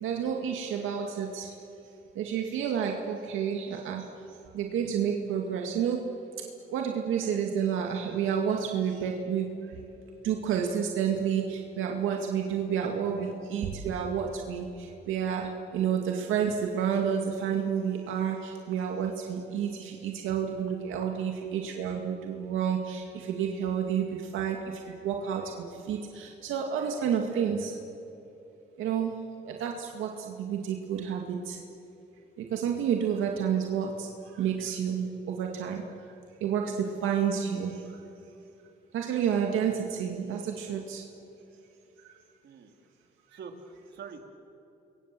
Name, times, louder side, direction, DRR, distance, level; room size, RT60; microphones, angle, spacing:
voice 1, 0.0-1.5 2.2-4.0 4.5-6.1 6.7-9.5 10.2-14.7 15.1-24.1 24.3-24.6 25.0-25.5 25.9-27.7 28.8-29.2 29.5-30.1 30.4-31.6 32.5-34.1 34.4-35.8 36.4-37.7 38.9-41.0, right 8 dB, 85° right, 2 dB, 2.2 m, -30 dB
voice 2, 42.4-42.7 43.3-44.2, right 5 dB, 60° right, 4 dB, 3.1 m, -45 dB
29.0 x 23.5 x 7.7 m, 3.0 s
cardioid pair, 90°, 20 cm